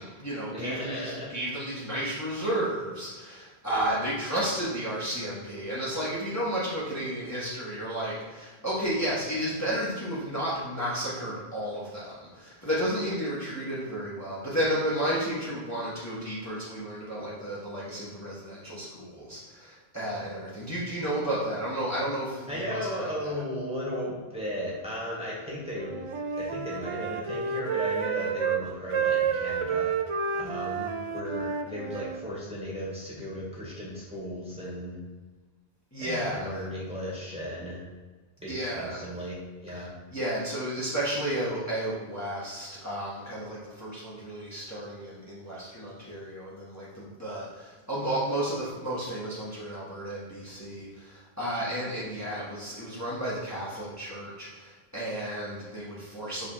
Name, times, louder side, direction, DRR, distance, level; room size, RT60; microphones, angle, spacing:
voice 1, 0.0-23.4 35.9-36.5 38.4-39.0 39.7-39.9 40.1-56.5, right 1 dB, 15° left, -9 dB, 1.6 m, -32 dB
voice 2, 0.5-1.3 22.5-26.0 26.4-30.0 30.3-35.0 36.0-37.8 38.4-39.4 39.6-39.9, equal, 5° right, -6 dB, 1.8 m, -35 dB
Wind instrument woodwind instrument, 25.8-28.6 28.9-32.2, right 6 dB, 55° right, 0.3 m, -30 dB
5.4 x 4.0 x 5.7 m, 1.4 s
omnidirectional pair, 1.1 m